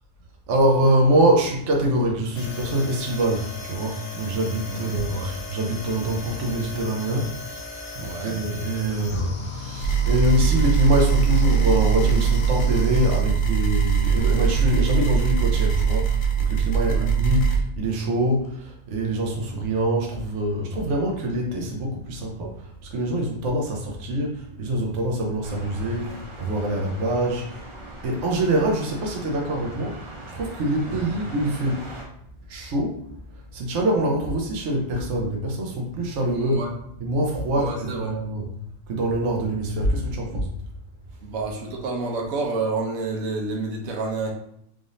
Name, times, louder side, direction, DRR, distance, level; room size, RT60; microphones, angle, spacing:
voice 1, 0.5-7.3 7.9-27.7 28.0-31.9 32.5-33.0 33.5-36.7 37.0-38.5 38.9-40.5, right 1 dB, 65° right, 0 dB, 1.0 m, -24 dB
sound 1, 2.3-13.2, left 4 dB, 70° left, 1.1 m, -37 dB
voice 2, 4.7-5.3 8.0-8.4 16.9-17.0 30.9-31.1 36.3-36.7 37.5-38.1 41.2-44.3, right 3 dB, 85° right, -1 dB, 1.2 m, -29 dB
sound 2, 9.8-17.6, right 7 dB, 55° left, 0.6 m, -21 dB
sound 3, 25.4-32.0, right 1 dB, 35° right, 0.5 m, -40 dB
3.6 x 3.4 x 2.6 m, 0.72 s
omnidirectional pair, 1.4 m